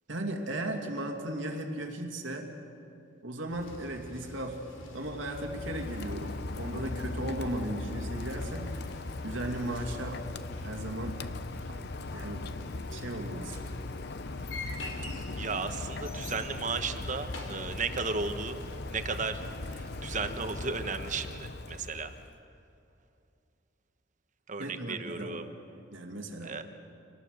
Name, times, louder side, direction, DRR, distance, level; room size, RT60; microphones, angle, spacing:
voice 1, 0.1-2.5 3.2-4.6 4.9-8.9 9.2-10.2 10.6-11.2 11.6-11.8 12.1-12.5 12.9-13.7 24.6-25.5 25.9-26.6, right 1 dB, 75° right, 3 dB, 2.5 m, -36 dB
sound 1, 3.5-20.7, left 1 dB, 75° left, 3.2 m, -46 dB
Rain, 5.1-22.4, left 2 dB, 55° left, 0.8 m, -39 dB
voice 2, 15.4-18.6 18.9-19.4 19.7-22.1 24.5-25.4 26.4-26.6, right 4 dB, 40° right, 8 dB, 1.2 m, -34 dB
26.0 x 19.0 x 6.6 m, 2.6 s
head